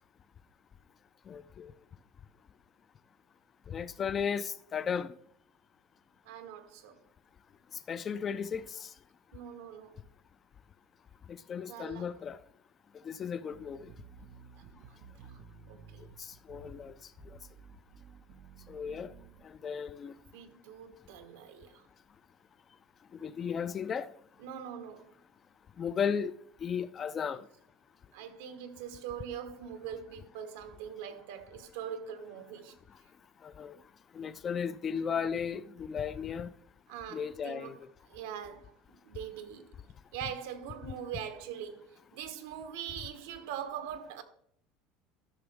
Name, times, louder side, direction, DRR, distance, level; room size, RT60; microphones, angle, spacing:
voice 1, 1.3-1.7 3.7-5.2 7.9-8.9 11.3-12.4 13.0-13.9 16.2-16.9 18.7-19.1 19.4-20.1 23.2-24.1 25.8-26.3 26.6-27.5 33.4-33.8 34.1-36.5 37.1-37.8, left 7 dB, 25° left, 0.3 m, -35 dB
voice 2, 6.2-7.0 9.3-10.0 11.7-12.1 14.7-15.1 15.7-16.0 20.3-21.9 24.4-25.1 28.1-32.8 36.9-37.8 38.1-39.7 40.1-44.2, right 8 dB, 85° right, 1.3 m, -42 dB
sound 1, 13.5-19.5, right 7 dB, 65° right, 1.1 m, -54 dB
13.0 x 5.9 x 3.5 m
cardioid pair, 160°, 0 cm